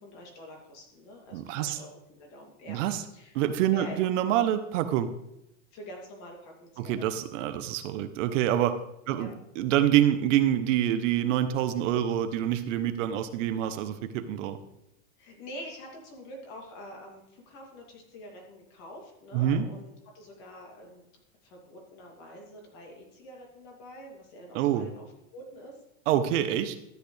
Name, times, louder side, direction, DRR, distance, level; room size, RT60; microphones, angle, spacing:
voice 1, 0.0-2.8 3.1-3.3 3.7-4.1 5.7-7.0 9.1-9.3 15.2-21.1 21.4-25.8, equal, 45° left, 0 dB, 2.8 m, -46 dB
voice 2, 1.3-1.8 2.7-3.0 3.3-5.1 6.8-8.8 9.1-14.6 19.3-19.7 24.5-24.9 26.1-26.8, right 11 dB, 65° right, 10 dB, 0.9 m, -26 dB
13.0 x 8.5 x 3.3 m, 0.83 s
supercardioid pair, 165°, 41 cm